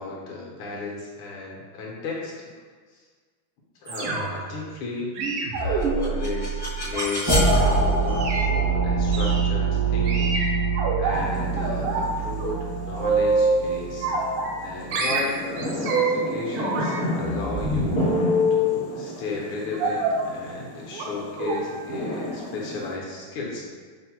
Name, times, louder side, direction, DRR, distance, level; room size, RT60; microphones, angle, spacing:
voice 1, 0.0-2.5 2.9-3.0 3.8-5.1 5.6-10.4 11.0-14.1 14.6-18.0 18.5-23.7, left 3 dB, 75° left, -3 dB, 1.5 m, -34 dB
sound 1, 3.9-4.5 5.2-7.6 8.1-8.4 9.1-9.4 10.1-11.2 11.6-12.1 12.4-13.6 14.0-14.7 14.9-16.2 16.5-18.6 19.8-20.2 20.9-21.1 21.4-21.6 21.9-22.1 22.4-22.5, right 2 dB, 80° right, 1.4 m, -26 dB
sound 2, 5.8-14.8, right 3 dB, 35° left, 0.3 m, -25 dB
sound 3, 11.1-22.9, left 1 dB, 55° left, 0.9 m, -33 dB
5.9 x 2.1 x 2.8 m, 1.5 s
omnidirectional pair, 2.4 m